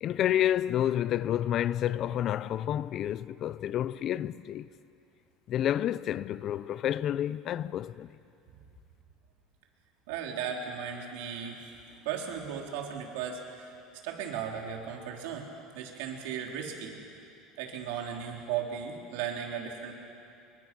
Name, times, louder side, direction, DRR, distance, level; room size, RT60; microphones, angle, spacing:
voice 1, 0.0-4.7 5.5-8.1, left 11 dB, 40° left, 0.5 m, -29 dB
voice 2, 10.1-11.7 12.0-13.7 14.0-15.5 15.7-17.0 17.6-19.9, right 8 dB, 80° right, 3.5 m, -36 dB
26.5 x 23.5 x 6.1 m
cardioid pair, 150°, 0 cm